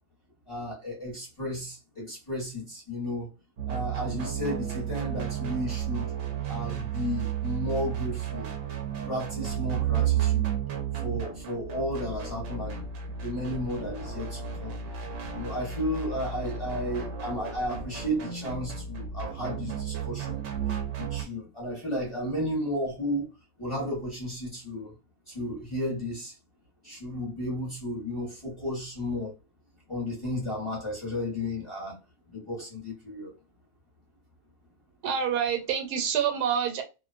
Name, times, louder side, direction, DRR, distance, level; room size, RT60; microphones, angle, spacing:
voice 1, 0.5-3.3 3.7-6.1 6.5-8.5 9.1-10.5 10.9-12.8 13.2-14.8 15.3-20.4 20.7-23.3 23.6-24.9 25.3-26.3 26.8-29.3 29.9-32.0 32.3-33.3, left 1 dB, 25° left, 0.8 m, -33 dB
sound 1, 3.6-21.2, right 9 dB, 65° right, 0.8 m, -32 dB
voice 2, 35.0-36.8, right 8 dB, 90° right, 1.2 m, -27 dB
2.6 x 2.2 x 2.4 m
omnidirectional pair, 1.6 m